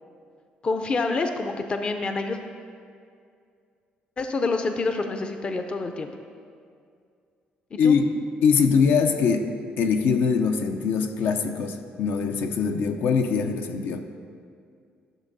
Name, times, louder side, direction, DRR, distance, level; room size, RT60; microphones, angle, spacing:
voice 1, 0.6-2.4 4.2-6.1 7.7-7.9, left 3 dB, 30° left, 6 dB, 0.5 m, -27 dB
voice 2, 8.4-9.5 9.8-14.0, left 6 dB, 75° left, 6 dB, 0.6 m, -22 dB
12.0 x 6.4 x 4.0 m, 2.3 s
cardioid pair, 135°, 3 cm